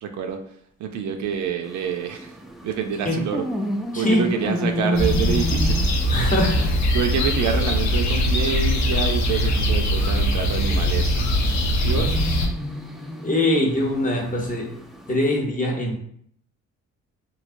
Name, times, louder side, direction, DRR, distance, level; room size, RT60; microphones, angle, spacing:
voice 1, 0.0-2.4 2.6-3.4 3.9-5.8 6.9-12.2, right 7 dB, 70° right, 5 dB, 0.5 m, -27 dB
sound 1, 1.6-15.2, equal, ahead, 0.3 m, -32 dB
sound 2, 4.9-12.5, equal, 65° left, 0.7 m, -21 dB
voice 2, 6.1-6.7 10.7-10.8 13.2-14.7 15.1-16.0, left 1 dB, 25° left, -1 dB, 0.9 m, -22 dB
3.1 x 2.7 x 2.5 m, 0.65 s
cardioid pair, 90°, 30 cm